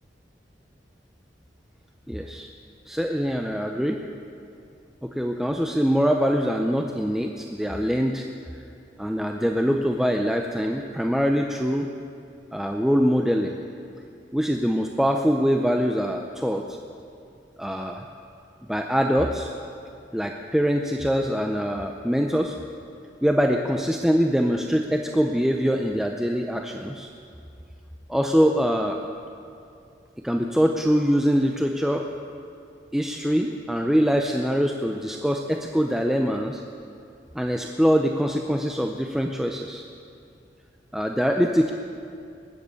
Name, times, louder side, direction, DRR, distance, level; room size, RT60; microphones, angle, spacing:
voice 1, 2.1-2.5 2.9-4.0 5.0-8.3 9.0-11.9 12.5-13.6 14.3-16.8 17.6-18.0 18.7-19.5 20.1-22.6 23.2-27.1 28.1-29.0 30.2-32.1 32.9-36.6 37.3-39.8 40.9-41.7, equal, ahead, 3 dB, 0.5 m, -23 dB
19.5 x 7.9 x 8.2 m, 2.5 s
head